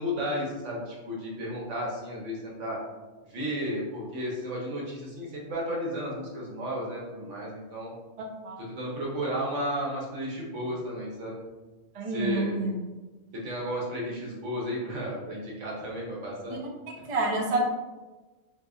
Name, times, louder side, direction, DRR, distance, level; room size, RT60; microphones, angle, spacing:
voice 1, 0.0-2.8 3.2-7.9 8.6-11.4 12.1-12.6 13.4-16.6 17.0-17.1, equal, 75° right, -3 dB, 1.2 m, -33 dB
voice 2, 11.9-12.8 16.5-16.6 17.1-17.7, right 2 dB, 50° right, 0 dB, 0.4 m, -28 dB
3.8 x 2.7 x 2.3 m, 1.2 s
omnidirectional pair, 1.3 m